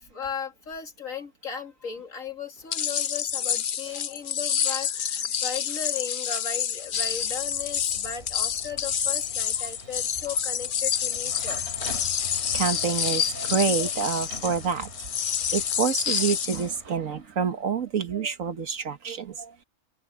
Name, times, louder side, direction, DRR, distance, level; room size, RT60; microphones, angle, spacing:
voice 1, 0.1-11.6, left 6 dB, 85° left, 3.1 m, -36 dB
sound 1, 2.7-16.7, left 8 dB, 50° left, 0.7 m, -28 dB
sound 2, 6.8-17.6, right 2 dB, 55° right, 3.7 m, -44 dB
voice 2, 12.5-14.9 15.2-19.6, right 6 dB, 80° right, 1.9 m, -28 dB
omnidirectional pair, 1.4 m